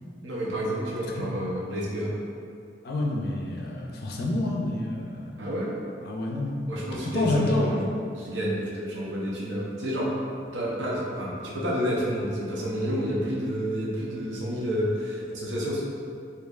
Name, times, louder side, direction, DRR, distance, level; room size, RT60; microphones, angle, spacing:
voice 1, 0.2-2.1 5.4-5.7 6.7-10.1 10.5-15.8, equal, 85° right, -5 dB, 0.7 m, -29 dB
voice 2, 2.8-5.5 6.0-6.8 7.1-7.8, left 2 dB, 60° left, -1 dB, 0.5 m, -28 dB
4.4 x 2.6 x 2.4 m, 2.4 s
head